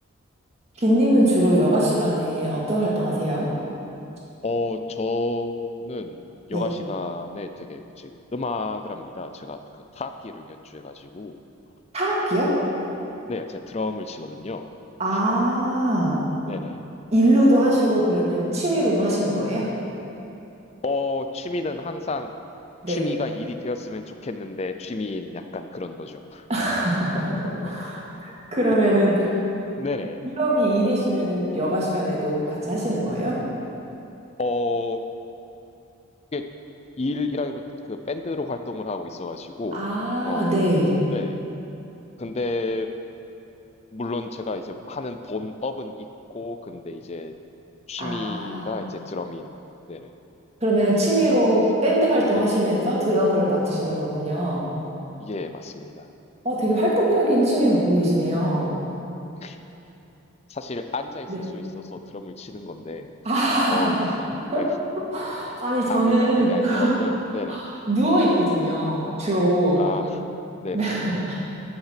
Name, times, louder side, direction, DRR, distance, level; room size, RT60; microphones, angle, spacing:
voice 1, 0.8-3.5 6.5-6.6 11.9-12.6 15.0-16.2 17.1-19.7 22.8-23.0 26.5-29.3 30.4-33.4 39.7-41.0 48.0-48.7 50.6-54.7 56.4-58.7 61.3-61.4 63.2-64.1 64.5-64.6 65.1-66.9 67.5-69.8 70.7-71.3, right 1 dB, 30° right, -5 dB, 2.1 m, -22 dB
voice 2, 4.4-6.2 6.5-9.6 9.9-11.4 13.3-14.7 16.5-16.8 20.8-22.3 22.9-26.4 28.2-28.3 29.3-29.4 29.8-30.2 34.4-35.0 36.3-36.4 37.0-39.9 40.2-40.7 41.1-41.4 42.2-42.9 43.9-47.3 47.9-49.5 49.9-50.1 52.3-52.5 53.9-54.1 55.2-56.1 59.4-59.6 60.5-63.1 63.7-64.2 64.6-64.7 65.9-67.6 69.7-70.2 70.6-71.0, left 3 dB, 30° left, 7 dB, 0.4 m, -31 dB
14.5 x 5.8 x 5.8 m, 2.8 s
head